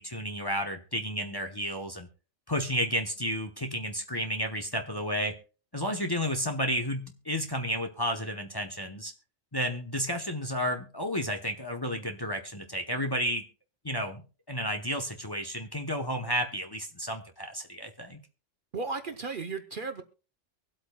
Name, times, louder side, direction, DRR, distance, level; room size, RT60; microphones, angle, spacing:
voice 1, 0.0-2.1 2.5-5.4 5.7-9.1 9.5-13.4 13.8-14.2 14.5-18.2, equal, 20° left, 4 dB, 0.9 m, -32 dB
voice 2, 18.7-20.0, right 4 dB, 50° right, 8 dB, 0.9 m, -35 dB
24.0 x 8.3 x 2.3 m, 0.35 s
omnidirectional pair, 1.3 m